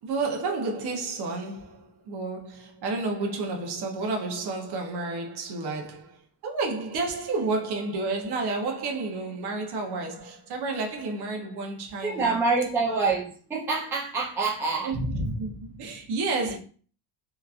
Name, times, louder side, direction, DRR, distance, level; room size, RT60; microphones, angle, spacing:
voice 1, 0.0-12.4 14.8-16.6, right 3 dB, 55° right, 0.8 m, -31 dB
voice 2, 12.0-14.9, right 4 dB, 5° right, 0.4 m, -26 dB
2.9 x 2.4 x 2.4 m
cardioid pair, 155°, 46 cm